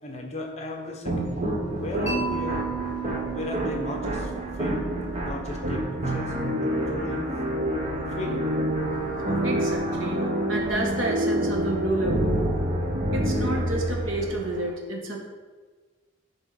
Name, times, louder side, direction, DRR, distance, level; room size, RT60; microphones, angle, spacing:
voice 1, 0.0-1.4 1.7-2.6 3.3-4.3 4.6-4.8 5.2-7.2 8.2-8.4, left 1 dB, 35° left, 0 dB, 1.0 m, -35 dB
sound 1, 1.0-14.7, right 1 dB, 35° right, 0.8 m, -28 dB
Mallet percussion, 2.1-6.1, right 5 dB, 20° right, 2.1 m, -34 dB
voice 2, 9.4-10.2 10.5-12.4 13.1-15.3, right 2 dB, 85° right, 0 dB, 1.3 m, -30 dB
10.0 x 3.6 x 4.0 m, 1.4 s
head